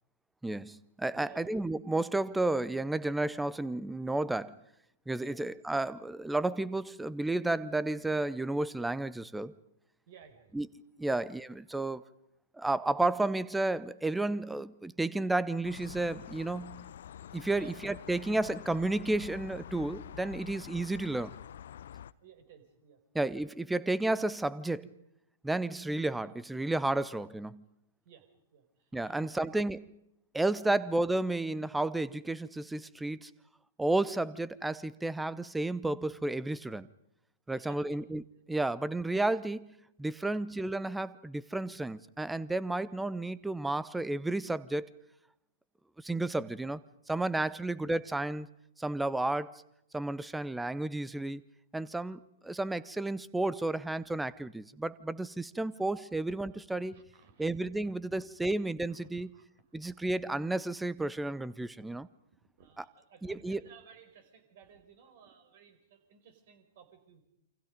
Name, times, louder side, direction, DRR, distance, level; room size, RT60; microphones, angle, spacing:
voice 1, 0.4-4.5 5.1-9.5 10.5-10.7 11.0-12.0 12.6-16.9 17.3-21.3 23.1-24.9 25.4-27.6 28.9-29.9 30.3-33.3 33.8-36.9 37.5-38.2 38.5-39.7 40.0-44.9 46.0-46.8 47.1-48.5 48.8-49.6 49.9-51.4 51.7-57.0 57.4-59.3 59.7-62.1 62.8-62.9 63.2-63.6, right 2 dB, 5° right, 0.8 m, -32 dB
voice 2, 1.1-1.4 5.2-5.4 10.1-10.5 17.5-17.7 22.2-23.0 28.0-28.3 28.5-29.5 30.6-30.7 37.5-38.0 40.2-40.3 47.5-47.8 56.9-57.4 57.8-58.2 58.9-59.0 59.3-59.5 59.8-60.0 62.6-67.2, right 7 dB, 45° right, 5.0 m, -56 dB
sound 1, 15.6-22.1, left 10 dB, 55° left, 0.8 m, -47 dB
29.0 x 26.0 x 5.3 m
figure-of-eight pair, 110°, 0 cm